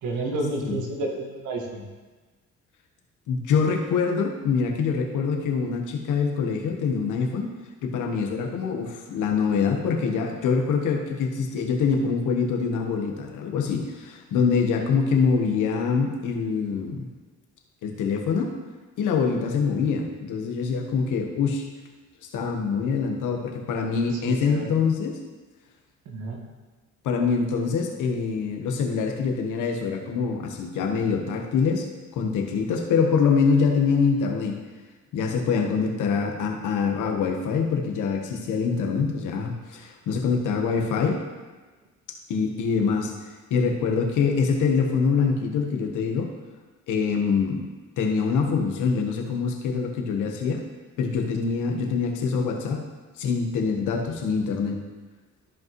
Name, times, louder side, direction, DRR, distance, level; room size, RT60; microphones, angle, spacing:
voice 1, 0.0-1.9 24.1-24.8 26.0-26.4, right 2 dB, 85° right, 1 dB, 1.6 m, -31 dB
voice 2, 3.3-7.5 7.8-17.1 17.8-18.6 19.0-21.6 22.3-25.2 27.0-31.9 32.1-34.5 35.1-41.2 42.3-43.1 43.5-46.3 46.9-47.7 48.0-50.6 51.0-52.9 53.2-54.8, left 5 dB, 85° left, 2 dB, 1.2 m, -24 dB
13.5 x 5.3 x 3.1 m, 1.3 s
cardioid pair, 90°, 30 cm